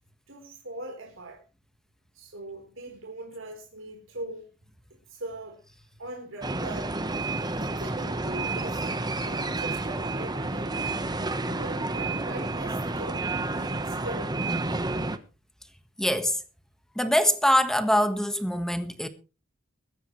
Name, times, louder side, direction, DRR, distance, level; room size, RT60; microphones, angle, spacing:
voice 1, 0.3-1.4 2.1-4.5 5.1-5.6 6.0-6.9 7.6-10.9 11.4-13.2 13.5-14.3, right 1 dB, 75° right, 4.1 m, -41 dB
Bangkok Airport, 6.4-15.2, right 2 dB, 20° right, 1.1 m, -30 dB
voice 2, 16.0-16.4 16.9-19.1, equal, 5° left, 1.4 m, -23 dB
22.0 x 10.5 x 3.2 m
head